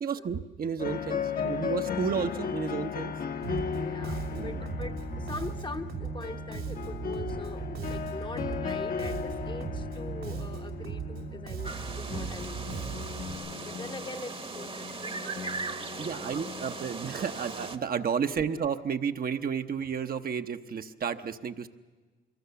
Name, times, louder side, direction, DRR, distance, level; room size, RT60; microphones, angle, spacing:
voice 1, 0.0-3.1 4.3-4.7 16.0-21.7, right 7 dB, 50° right, 7 dB, 0.9 m, -32 dB
sound 1, 0.8-17.8, left 6 dB, 50° left, 1.1 m, -36 dB
Bass guitar, 3.4-13.3, right 7 dB, 90° right, 3.0 m, -38 dB
voice 2, 3.7-12.9 13.6-16.6 16.9-17.0, left 3 dB, 25° left, 7 dB, 1.0 m, -43 dB
sound 2, 11.6-17.8, right 4 dB, 30° right, 1.1 m, -39 dB
24.5 x 23.0 x 6.9 m, 1.3 s
cardioid pair, 90°, 20 cm